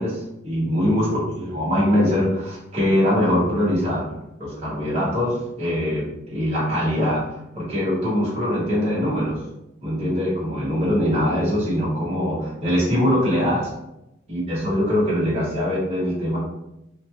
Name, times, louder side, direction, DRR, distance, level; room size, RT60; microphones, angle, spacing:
voice 1, 0.0-4.0 4.4-7.2 7.5-9.4 9.8-13.7 14.3-16.4, equal, 30° right, -8 dB, 1.2 m, -22 dB
2.7 x 2.1 x 3.1 m, 0.88 s
head